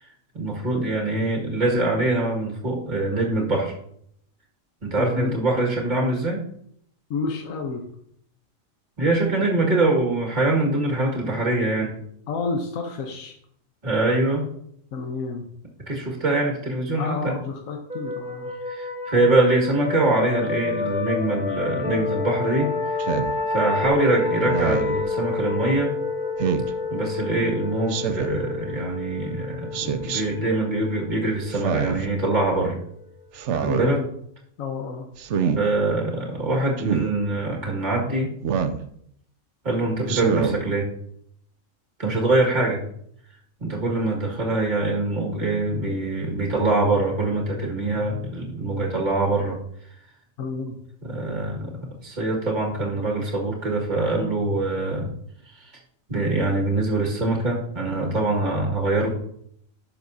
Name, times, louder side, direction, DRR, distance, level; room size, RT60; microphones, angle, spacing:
voice 1, 0.3-3.7 4.8-6.4 9.0-12.0 13.8-14.5 15.9-17.4 18.7-23.0 23.5-26.0 26.9-32.8 33.5-34.0 35.6-38.3 39.6-40.9 42.0-42.8 43.6-49.6 51.0-55.1 55.5-55.7 56.1-59.1, right 2 dB, 35° right, -2 dB, 2.1 m, -24 dB
voice 2, 5.0-5.4 7.1-7.8 12.3-13.3 14.9-15.4 17.0-18.5 33.6-34.1 34.6-35.1 50.4-50.8, left 4 dB, 80° left, 3 dB, 1.4 m, -30 dB
sound 1, 17.9-33.2, left 4 dB, 5° right, 0.5 m, -29 dB
Speech synthesizer, 23.0-23.3 24.4-25.0 26.4-26.7 27.9-28.4 29.7-30.2 31.5-32.1 33.3-33.9 35.2-35.6 36.8-37.1 38.4-38.8 40.1-40.6, right 7 dB, 65° right, 0.9 m, -25 dB
11.0 x 6.9 x 2.7 m, 0.69 s
omnidirectional pair, 1.4 m